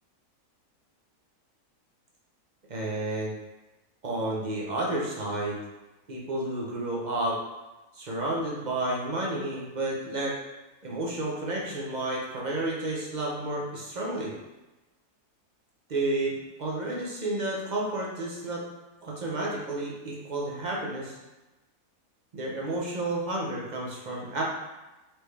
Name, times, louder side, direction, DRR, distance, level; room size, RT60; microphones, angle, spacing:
voice 1, 2.7-3.3 4.0-5.6 6.1-7.4 7.9-10.3 10.8-14.3 15.9-16.3 16.6-18.6 19.0-21.2 22.3-24.4, right 2 dB, 40° right, -4 dB, 0.7 m, -31 dB
4.5 x 3.3 x 3.2 m, 1.1 s
omnidirectional pair, 1.6 m